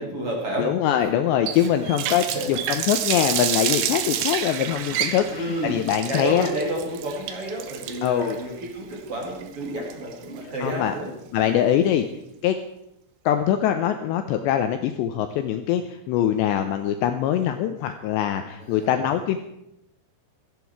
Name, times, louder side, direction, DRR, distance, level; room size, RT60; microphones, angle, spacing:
voice 1, 0.0-0.7 1.8-1.9 2.3-2.5 5.3-5.8 6.1-11.1 18.6-18.9, right 1 dB, 35° right, -2 dB, 3.3 m, -30 dB
voice 2, 0.6-6.5 8.0-8.4 10.6-10.9 11.3-12.1 12.4-12.6 13.3-19.4, left 10 dB, 85° left, 7 dB, 2.6 m, -23 dB
Water tap faucet, 1.5-10.4, right 10 dB, 75° right, 3.0 m, -29 dB
16.5 x 14.5 x 4.7 m, 0.82 s
omnidirectional pair, 5.8 m